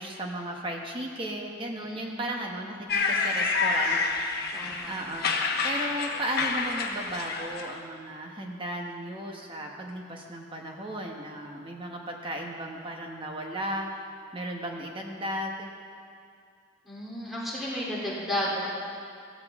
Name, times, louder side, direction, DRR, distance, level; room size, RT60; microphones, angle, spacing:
voice 1, 0.0-4.0 4.8-13.9 14.3-15.7, right 1 dB, 25° right, 1 dB, 1.1 m, -35 dB
voice 2, 1.8-2.2 4.5-4.9 16.8-18.7, equal, ahead, -7 dB, 3.2 m, -33 dB
sound 1, 2.9-7.8, left 4 dB, 50° left, 1.1 m, -28 dB
15.5 x 15.0 x 3.6 m, 2.3 s
head